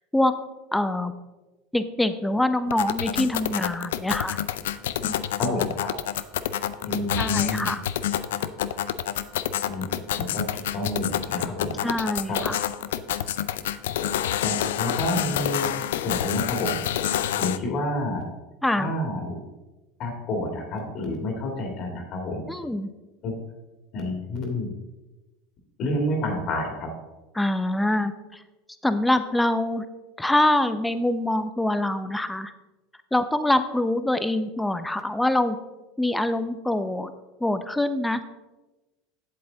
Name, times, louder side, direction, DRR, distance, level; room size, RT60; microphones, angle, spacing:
voice 1, 0.7-1.1 1.7-4.4 5.0-5.1 7.2-7.8 11.8-12.6 18.6-18.9 22.5-22.9 27.4-28.4 28.8-29.9 30.2-32.5 33.1-35.6 36.0-37.1 37.4-38.2, left 1 dB, 5° left, 11 dB, 0.7 m, -24 dB
sound 1, 2.7-17.6, left 11 dB, 80° left, 0.4 m, -28 dB
voice 2, 5.4-5.9 6.9-7.7 9.6-11.9 12.3-12.4 14.4-16.8 17.4-18.2 18.8-19.4 20.0-22.4 23.2-23.3 23.9-24.7 25.8-26.9, left 1 dB, 50° left, 2 dB, 2.2 m, -29 dB
8.0 x 7.6 x 3.9 m, 1.1 s
hypercardioid pair, 95°, 0 cm